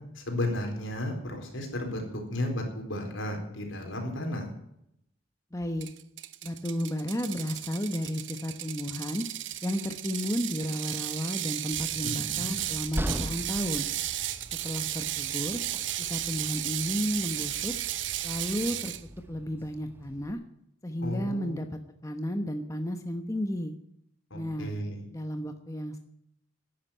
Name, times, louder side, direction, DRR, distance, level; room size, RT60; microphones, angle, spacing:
voice 1, 0.1-4.5 12.0-12.5 21.0-21.7 24.3-25.0, left 1 dB, 75° left, 3 dB, 4.2 m, -34 dB
voice 2, 5.5-5.9 6.4-9.2 9.6-13.9 14.6-15.6 16.0-17.7 18.2-18.9 19.3-20.4 20.8-23.7 24.3-24.7 25.1-26.0, equal, 15° left, 6 dB, 1.0 m, -33 dB
Ratchet pawl, 5.8-19.0, right 13 dB, 65° right, 0.8 m, -34 dB
Train, 11.7-20.3, equal, 10° right, 0.9 m, -41 dB
11.5 x 10.0 x 9.1 m, 0.76 s
head